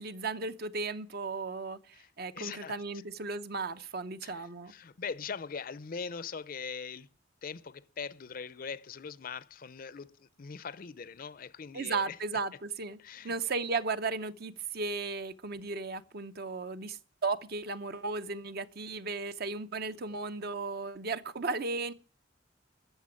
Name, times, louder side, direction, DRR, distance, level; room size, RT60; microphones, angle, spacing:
voice 1, 0.0-4.7 11.7-13.0 13.2-21.9, right 4 dB, 55° right, 0.8 m, -35 dB
voice 2, 2.3-2.8 4.2-7.1 7.4-12.2 13.0-13.4, left 5 dB, 50° left, 0.5 m, -41 dB
14.0 x 6.9 x 9.6 m
head